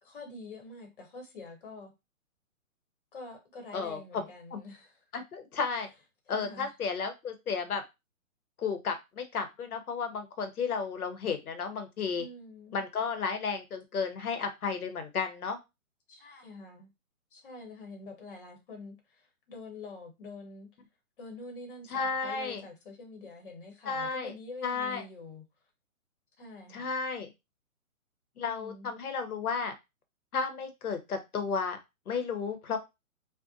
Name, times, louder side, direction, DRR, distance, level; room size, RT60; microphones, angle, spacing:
voice 1, 0.0-1.9 3.1-5.0 6.3-6.7 12.1-12.8 16.1-16.9 17.3-20.7 21.2-25.5 26.4-26.9 28.4-28.9, left 3 dB, 40° left, 0.8 m, -46 dB
voice 2, 5.1-5.9 6.3-7.8 8.6-12.3 12.7-15.6 21.9-22.6 23.9-24.3 24.6-25.0 26.7-27.3 28.4-29.7 30.3-31.8 32.1-32.8, left 5 dB, 90° left, 0.9 m, -33 dB
2.6 x 2.1 x 2.5 m
hypercardioid pair, 160°, 43 cm